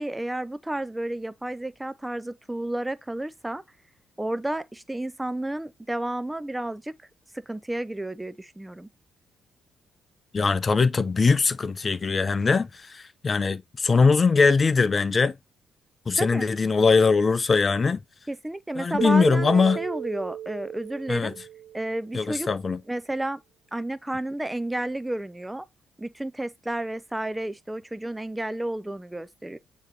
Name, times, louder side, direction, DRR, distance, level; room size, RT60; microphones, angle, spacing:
voice 1, 0.0-3.6 4.2-6.9 7.5-8.9 16.2-16.5 18.3-21.3 21.7-22.5 22.9-23.4 23.7-25.6 26.0-29.6, right 1 dB, 10° right, 0.7 m, -31 dB
voice 2, 10.3-15.3 16.1-18.0 18.8-19.8 21.1-21.3 22.1-22.8, left 4 dB, 40° left, 0.7 m, -21 dB
Keyboard (musical), 19.0-22.2, right 10 dB, 55° right, 0.8 m, -34 dB
8.3 x 3.0 x 3.9 m
hypercardioid pair, 50°, 0 cm